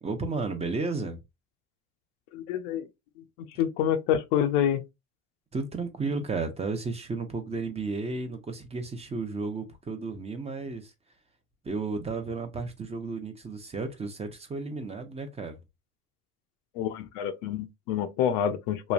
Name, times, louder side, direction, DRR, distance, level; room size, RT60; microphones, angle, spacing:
voice 1, 0.0-1.2 5.5-10.9 11.6-15.6, right 3 dB, 20° right, 0.6 m, -33 dB
voice 2, 2.3-2.9 3.4-4.8 16.8-18.9, left 9 dB, 70° left, 0.6 m, -27 dB
3.0 x 2.2 x 2.4 m
supercardioid pair, 90°, 35 cm